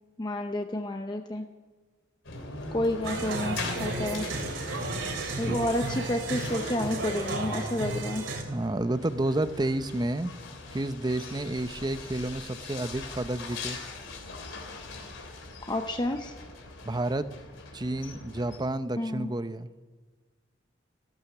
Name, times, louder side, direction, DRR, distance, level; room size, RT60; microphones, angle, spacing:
voice 1, 0.2-1.5 2.7-4.2 5.4-8.2 15.7-16.3 19.0-19.3, left 1 dB, 25° left, 5 dB, 0.7 m, -30 dB
sound 1, 2.2-18.6, left 3 dB, 85° left, 3.3 m, -41 dB
sound 2, 3.0-8.4, right 2 dB, 80° right, 3.2 m, -33 dB
voice 2, 8.5-10.3 10.7-13.8 16.8-17.3 17.7-19.7, right 1 dB, 20° right, 12 dB, 0.6 m, -30 dB
15.0 x 14.0 x 6.0 m, 1.4 s
head